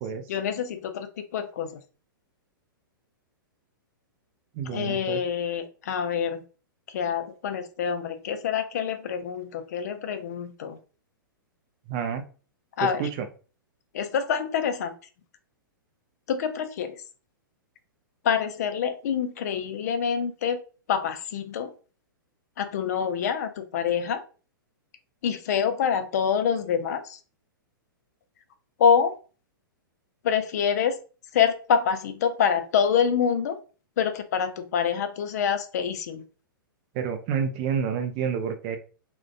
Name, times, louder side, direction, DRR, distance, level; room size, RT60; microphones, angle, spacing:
voice 1, 0.3-1.8 4.7-6.4 6.9-10.8 12.8-13.0 13.9-14.9 16.3-17.0 18.2-20.6 20.9-21.7 22.6-24.2 25.2-27.2 28.8-29.2 30.2-31.0 31.3-33.6 34.0-36.2, left 7 dB, 45° left, 9 dB, 0.4 m, -26 dB
voice 2, 4.5-5.2 11.9-12.2 12.8-13.3 36.9-38.8, right 7 dB, 30° right, 7 dB, 0.4 m, -29 dB
2.4 x 2.2 x 2.4 m, 0.36 s
figure-of-eight pair, 105°, 12 cm